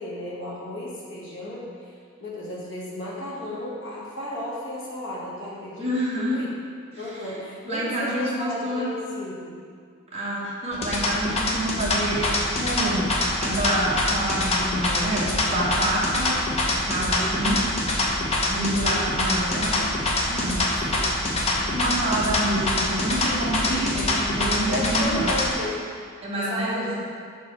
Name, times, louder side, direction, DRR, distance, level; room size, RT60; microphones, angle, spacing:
voice 1, 0.0-1.9 2.2-6.5 7.0-9.5 10.7-11.0 16.7-17.1 18.6-19.1 20.9-21.2 24.7-25.8 26.3-27.0, left 1 dB, 60° left, -5 dB, 1.4 m, -34 dB
voice 2, 5.8-6.4 6.9-7.4 7.6-8.9 10.1-13.1 13.4-16.4 16.7-17.6 18.5-20.7 21.6-25.3 26.2-27.0, right 1 dB, 30° right, -6 dB, 1.0 m, -27 dB
sound 1, 10.7-25.5, left 2 dB, 30° left, 0.7 m, -25 dB
4.7 x 4.0 x 5.8 m, 2.2 s
head